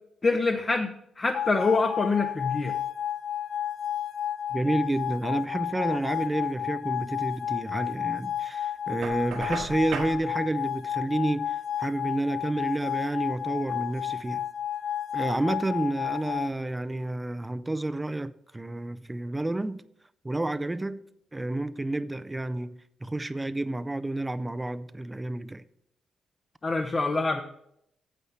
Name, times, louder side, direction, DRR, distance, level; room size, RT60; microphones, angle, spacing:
voice 1, 0.2-2.7 26.6-27.4, left 3 dB, 30° left, 0.8 m, -25 dB
sound 1, 1.3-16.5, left 10 dB, 70° left, 0.4 m, -32 dB
voice 2, 4.5-14.4 15.1-19.8 20.2-21.0 21.3-25.6, right 2 dB, 15° right, 0.5 m, -30 dB
Knock, 9.0-10.2, right 5 dB, 75° right, 1.7 m, -35 dB
9.2 x 8.0 x 4.4 m
cardioid pair, 105°, 0 cm